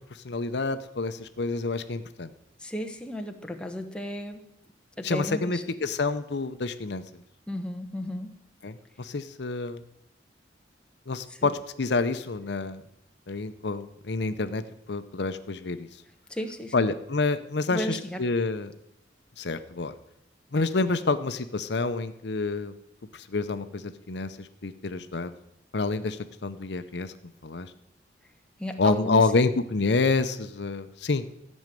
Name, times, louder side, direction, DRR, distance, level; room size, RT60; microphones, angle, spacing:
voice 1, 0.2-2.3 5.0-7.0 8.6-9.8 11.1-11.5 11.8-12.8 13.3-14.6 14.9-15.9 16.7-18.7 19.4-19.9 20.5-22.8 23.1-25.3 25.7-27.1 27.4-27.7 28.8-31.2, left 3 dB, 70° left, 11 dB, 0.7 m, -28 dB
voice 2, 2.6-4.5 5.0-5.6 7.5-8.3 11.3-11.5 16.3-16.8 17.7-18.2 28.6-29.3, equal, 5° left, 3 dB, 1.1 m, -34 dB
14.0 x 6.3 x 9.1 m, 0.79 s
head